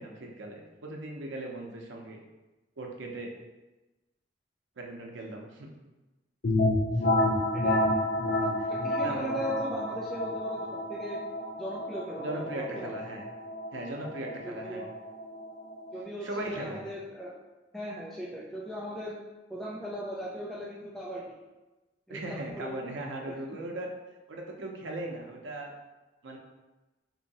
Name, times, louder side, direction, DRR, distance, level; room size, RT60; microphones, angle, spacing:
voice 1, 0.0-2.2 2.8-3.3 4.8-5.7 7.0-7.1 8.6-8.7 9.0-9.4 12.2-13.3 13.7-14.8 16.2-16.8 22.1-23.9 24.3-25.7 26.2-26.4, right 2 dB, 85° right, 0 dB, 0.6 m, -38 dB
sound 1, 6.4-16.0, left 1 dB, 55° left, 0.6 m, -30 dB
voice 2, 7.6-8.0 8.7-11.2 11.6-12.9 14.4-14.9 15.9-17.3 17.7-19.2 19.5-21.2 22.1-22.8, equal, ahead, -6 dB, 0.3 m, -38 dB
2.8 x 2.7 x 4.0 m, 1.1 s
head